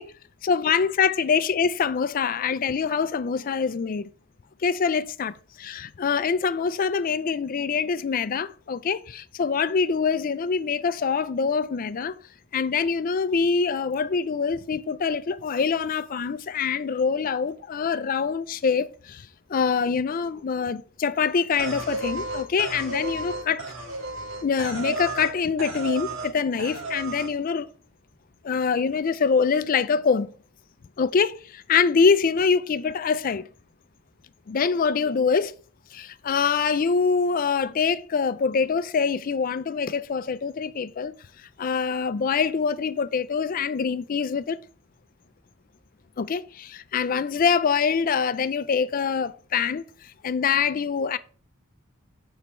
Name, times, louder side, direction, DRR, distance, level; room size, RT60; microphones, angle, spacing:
voice 1, 0.5-4.1 4.6-12.2 12.5-23.6 24.4-27.7 28.4-30.3 31.0-33.5 34.5-35.5 35.9-41.1 41.6-44.6 46.2-49.8 50.2-51.2, left 5 dB, 40° left, 0.4 m, -24 dB
sound 1, 21.6-25.3 25.6-26.3 26.6-27.3, right 2 dB, 70° right, 1.7 m, -33 dB
7.1 x 4.2 x 4.3 m
head